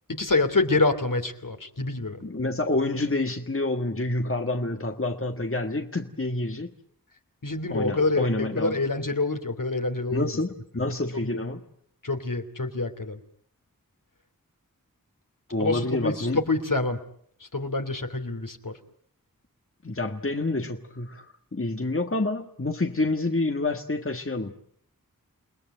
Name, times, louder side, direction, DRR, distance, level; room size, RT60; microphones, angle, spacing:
voice 1, 0.1-2.2 7.4-10.3 11.1-11.4 12.0-13.2 15.6-17.0 17.4-18.8, left 3 dB, 65° left, 6 dB, 3.0 m, -27 dB
voice 2, 2.2-6.7 7.7-8.7 10.1-11.6 15.5-16.4 19.8-21.3 21.5-24.5, left 2 dB, 40° left, 5 dB, 1.7 m, -28 dB
29.5 x 19.5 x 9.2 m, 0.65 s
wide cardioid pair, 40°, 34 cm